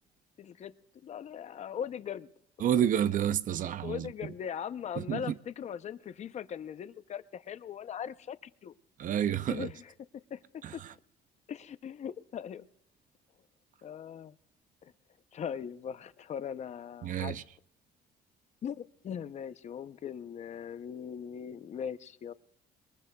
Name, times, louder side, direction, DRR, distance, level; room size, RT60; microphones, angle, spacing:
voice 1, 0.4-0.7 1.0-2.3 3.8-8.4 8.6-8.7 9.5-10.8 11.5-12.7 13.8-14.3 14.8-14.9 15.3-17.4 18.6-22.3, left 8 dB, 40° left, 0.6 m, -40 dB
voice 2, 2.6-4.1 5.0-5.3 9.0-9.7 10.6-10.9 17.0-17.4, right 10 dB, 50° right, 0.5 m, -29 dB
22.5 x 20.0 x 2.3 m
cardioid pair, 110°, 17 cm